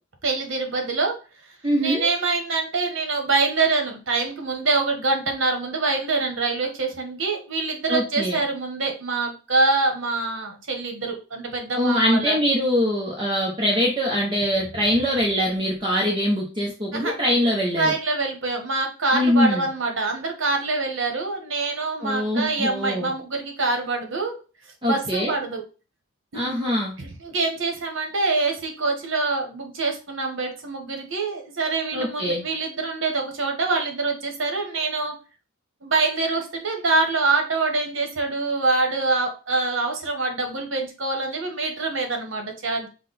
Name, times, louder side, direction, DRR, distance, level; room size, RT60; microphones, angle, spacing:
voice 1, 0.2-1.1 1.8-12.4 16.9-17.1 17.8-24.4 24.8-25.6 27.0-35.1 35.8-42.9, right 3 dB, 60° right, 3 dB, 1.2 m, -25 dB
voice 2, 1.6-2.1 7.9-8.4 11.8-17.9 19.1-19.7 22.0-23.1 24.8-25.4 26.3-26.9 31.9-32.5, equal, 25° right, -2 dB, 0.7 m, -23 dB
5.7 x 2.2 x 4.1 m, 0.34 s
head